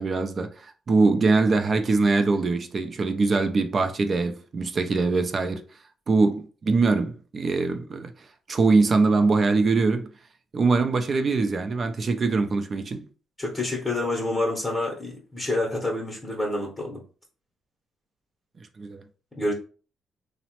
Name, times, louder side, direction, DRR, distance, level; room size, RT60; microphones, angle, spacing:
voice 1, 0.0-5.6 6.1-8.1 8.5-10.1 10.5-13.1 18.6-19.0, right 3 dB, 40° right, 0.4 m, -23 dB
voice 2, 13.4-17.0 19.4-19.5, left 2 dB, 15° left, 0.8 m, -28 dB
3.0 x 2.0 x 2.9 m
cardioid pair, 90°, 0 cm